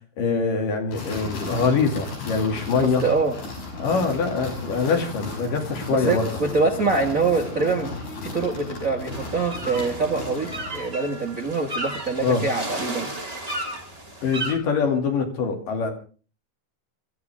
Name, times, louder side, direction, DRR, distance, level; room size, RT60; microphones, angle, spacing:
voice 1, 0.2-3.0 3.8-6.3 12.2-12.4 14.2-15.9, left 5 dB, 60° left, 4 dB, 4.0 m, -23 dB
sound 1, 0.9-10.9, left 3 dB, 75° left, 7.5 m, -35 dB
voice 2, 2.8-3.4 5.9-7.9 8.2-13.1, right 4 dB, 85° right, 3 dB, 0.7 m, -24 dB
sound 2, 9.1-14.5, right 1 dB, 10° right, 2.6 m, -33 dB
26.0 x 14.0 x 3.6 m, 0.38 s
omnidirectional pair, 4.4 m